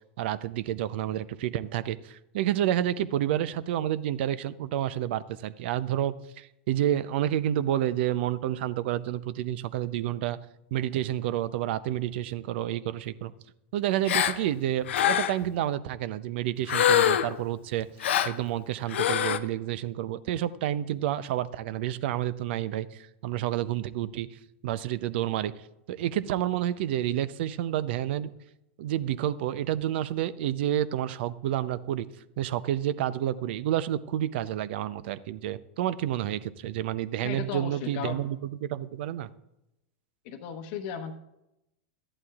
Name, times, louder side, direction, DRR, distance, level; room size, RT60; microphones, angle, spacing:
voice 1, 0.2-10.4 10.7-13.3 13.7-17.9 18.2-24.3 24.6-25.5 25.9-28.3 28.8-32.1 32.4-39.3, right 12 dB, 60° right, 15 dB, 0.6 m, -29 dB
Gasp, 14.1-14.4 14.9-15.5 16.7-17.4 18.0-18.4 18.9-19.4, left 10 dB, 75° left, 0.6 m, -24 dB
voice 2, 37.2-38.3 40.2-41.1, left 7 dB, 55° left, 5 dB, 1.0 m, -35 dB
14.0 x 11.0 x 2.4 m, 0.87 s
hypercardioid pair, 105°, 6 cm